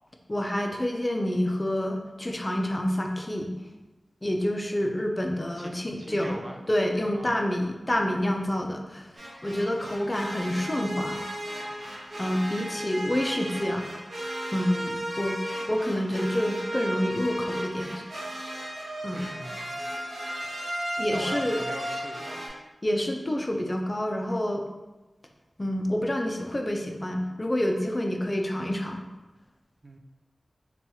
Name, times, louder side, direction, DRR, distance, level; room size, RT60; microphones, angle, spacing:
voice 1, 0.3-3.5 4.2-6.4 6.7-9.1 9.4-11.2 12.2-13.9 14.5-15.4 15.7-18.0 19.0-19.3 21.0-21.6 22.8-24.6 25.6-29.0, left 1 dB, 30° left, 2 dB, 0.4 m, -28 dB
voice 2, 5.6-6.6 7.1-7.4 19.1-19.8 21.1-22.6 29.8-30.0, right 1 dB, 35° right, 3 dB, 0.4 m, -41 dB
sound 1, 9.2-22.5, equal, 75° right, 0.7 m, -35 dB
2.9 x 2.3 x 4.2 m, 1.1 s
wide cardioid pair, 65°, 0 cm